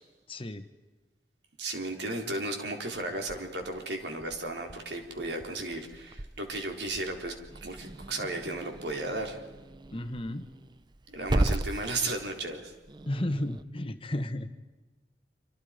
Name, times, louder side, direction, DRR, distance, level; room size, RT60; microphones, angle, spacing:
voice 1, 0.3-0.6 9.9-10.5 13.1-14.5, left 1 dB, 30° left, 9 dB, 1.5 m, -33 dB
voice 2, 1.6-7.3 7.6-9.4 11.1-12.7, right 2 dB, 75° right, 3 dB, 4.1 m, -34 dB
Growling / Hiss, 2.9-13.6, right 1 dB, 25° right, 0.6 m, -37 dB
27.0 x 26.0 x 5.2 m, 1.2 s
head